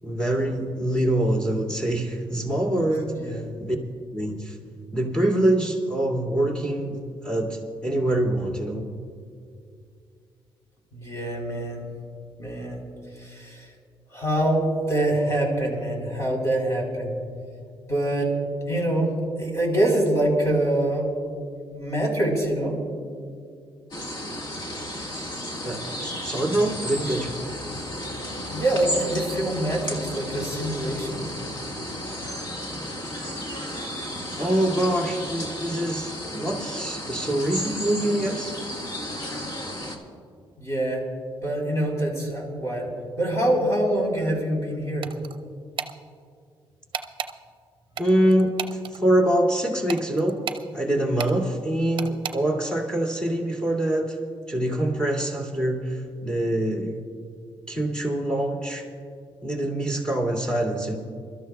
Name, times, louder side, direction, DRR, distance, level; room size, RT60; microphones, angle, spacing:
voice 1, 0.0-3.8 4.1-4.6 4.9-8.8 25.6-27.4 34.4-38.5 48.0-50.4 50.7-54.2 54.5-57.0 57.7-58.9 59.4-61.0, right 1 dB, 10° left, -1 dB, 2.2 m, -25 dB
voice 2, 3.1-3.4 10.9-11.8 12.4-12.8 13.1-13.7 14.1-17.1 17.9-18.3 18.7-21.1 21.7-22.8 28.5-31.5 40.6-41.0 41.4-45.1, right 1 dB, 30° left, -1 dB, 4.0 m, -25 dB
sound 1, 23.9-40.0, left 1 dB, 50° left, 1.6 m, -33 dB
sound 2, 45.0-45.4 45.8-45.9 46.9-47.3 48.0-49.0 49.9-50.7 51.2-51.3 52.0-52.4, right 8 dB, 55° right, 0.6 m, -32 dB
28.0 x 13.0 x 2.3 m, 2.3 s
cardioid pair, 125°, 10 cm